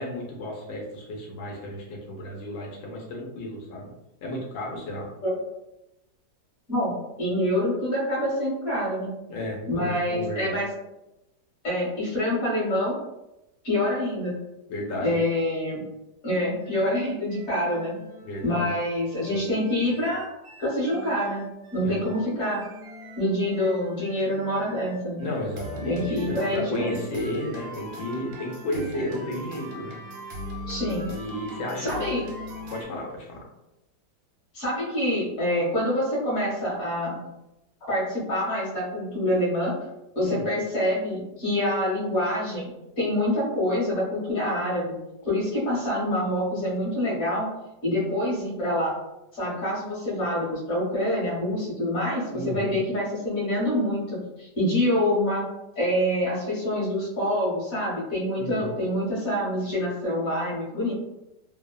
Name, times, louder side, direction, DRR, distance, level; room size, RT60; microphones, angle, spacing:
voice 1, 0.0-3.9 4.2-5.1 9.3-10.5 14.7-15.2 18.2-18.7 21.8-22.1 25.1-30.0 31.0-32.0 32.7-33.4 40.2-40.5 52.3-52.8 58.4-58.8, left 1 dB, 85° left, -2 dB, 1.3 m, -33 dB
voice 2, 6.7-9.2 9.7-10.7 11.6-13.0 13.6-14.5 15.0-15.9 16.2-18.0 18.4-20.3 20.6-22.7 23.2-25.3 25.9-27.0 30.7-31.1 31.8-32.2 34.5-37.2 37.9-39.8 40.1-42.7 43.0-45.0 45.2-47.5 47.8-48.9 49.3-55.4 55.8-60.9, left 1 dB, 45° left, -5 dB, 1.2 m, -26 dB
sound 1, 16.6-32.8, right 1 dB, 85° right, 1.2 m, -41 dB
3.1 x 2.0 x 2.2 m, 0.93 s
omnidirectional pair, 1.8 m